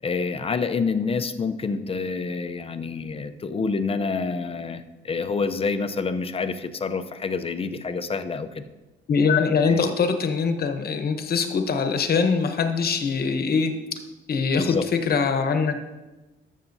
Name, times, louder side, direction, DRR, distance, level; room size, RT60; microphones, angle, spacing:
voice 1, 0.0-8.7 9.6-9.9 14.6-14.8, left 4 dB, 30° left, 10 dB, 0.6 m, -27 dB
voice 2, 9.1-13.7 14.3-15.8, left 5 dB, 50° left, 7 dB, 1.0 m, -23 dB
13.0 x 7.2 x 2.7 m, 1.1 s
cardioid pair, 90°, 20 cm